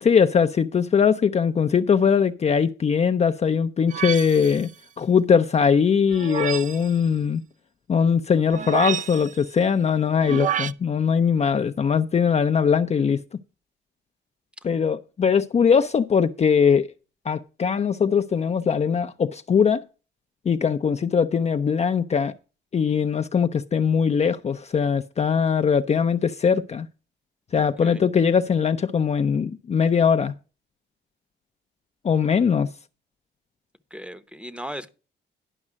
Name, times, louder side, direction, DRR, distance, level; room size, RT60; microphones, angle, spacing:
voice 1, 0.0-4.7 5.0-7.4 7.9-13.2 14.6-16.9 17.3-19.8 20.5-22.3 22.7-26.9 27.5-30.3 32.0-32.7, left 6 dB, 35° left, 0.5 m, -21 dB
sound 1, 3.9-4.7 6.1-6.9 8.5-9.4 10.2-10.7, right 8 dB, 40° right, 0.5 m, -29 dB
voice 2, 33.9-34.9, equal, 5° right, 0.8 m, -36 dB
11.0 x 5.4 x 6.2 m
cardioid pair, 90°, 20 cm